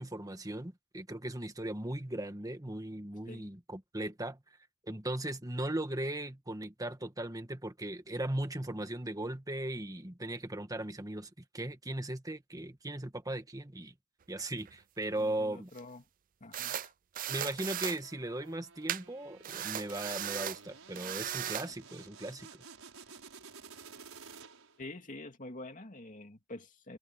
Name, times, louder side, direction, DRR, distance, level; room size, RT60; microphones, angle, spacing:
voice 1, 0.0-4.4 4.8-11.3 11.5-13.9 14.3-15.7 17.3-22.6, right 1 dB, 15° right, 1.6 m, -38 dB
sound 1, 14.4-14.7 15.8-15.9 16.5-16.9 17.2-18.0 18.9-19.0 19.4-20.6 21.0-21.7, right 11 dB, 40° right, 0.4 m, -37 dB
voice 2, 15.2-16.0 16.4-16.9 24.8-27.0, left 2 dB, 40° left, 2.6 m, -47 dB
sound 2, 18.0-24.9, right 5 dB, 80° right, 6.0 m, -53 dB
head